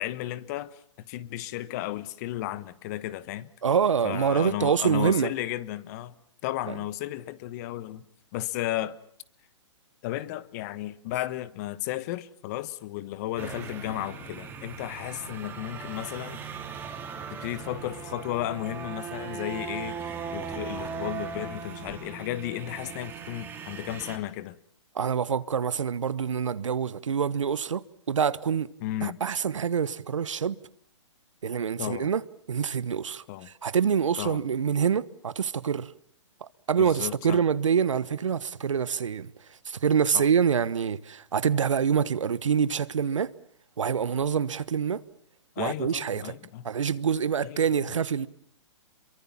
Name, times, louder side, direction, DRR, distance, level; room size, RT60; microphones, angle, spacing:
voice 1, 0.0-3.5 4.0-6.1 6.4-8.0 8.3-9.0 10.0-16.4 17.3-24.6 28.8-29.2 31.8-32.1 33.3-33.5 34.2-34.4 36.8-37.4 40.1-40.3 45.6-46.7 47.4-47.9, left 14 dB, 35° left, 1.1 m, -34 dB
voice 2, 3.6-5.3 6.7-6.8 24.9-28.7 29.0-30.6 31.4-32.2 32.5-35.9 36.7-39.3 39.6-43.3 43.8-45.0 45.6-46.3 46.6-48.3, right 7 dB, 80° right, 1.1 m, -26 dB
sound 1, 13.4-24.2, right 6 dB, 10° right, 3.1 m, -38 dB
27.0 x 23.5 x 7.3 m
hypercardioid pair, 145°, 16 cm